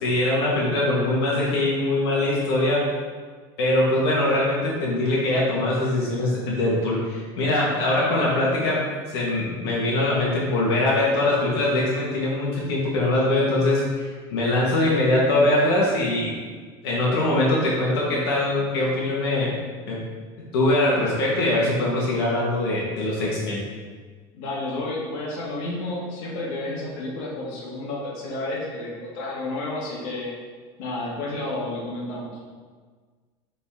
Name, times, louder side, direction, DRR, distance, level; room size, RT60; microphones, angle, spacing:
voice 1, 0.0-2.9 3.6-16.3 16.8-19.5 19.9-20.0 20.5-23.6, left 1 dB, 90° left, -5 dB, 1.6 m, -22 dB
voice 2, 24.3-30.3 30.8-32.3, left 2 dB, 65° left, -4 dB, 1.8 m, -31 dB
7.0 x 4.2 x 3.7 m, 1.5 s
supercardioid pair, 140°, 13 cm